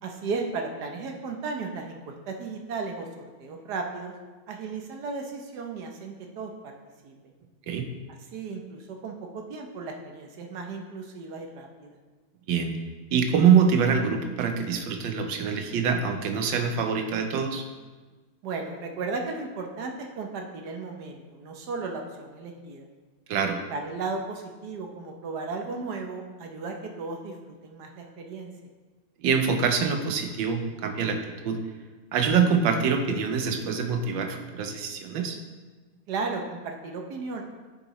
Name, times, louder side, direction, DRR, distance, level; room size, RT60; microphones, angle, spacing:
voice 1, 0.0-4.1 4.5-6.7 7.0-7.3 8.2-12.0 18.4-22.9 23.7-28.5 36.1-37.4, right 4 dB, 65° right, 3 dB, 1.3 m, -35 dB
voice 2, 13.1-17.6 23.3-23.6 29.2-31.6 32.1-35.4, right 6 dB, 80° right, 5 dB, 1.5 m, -24 dB
9.7 x 6.5 x 3.1 m, 1.3 s
omnidirectional pair, 2.1 m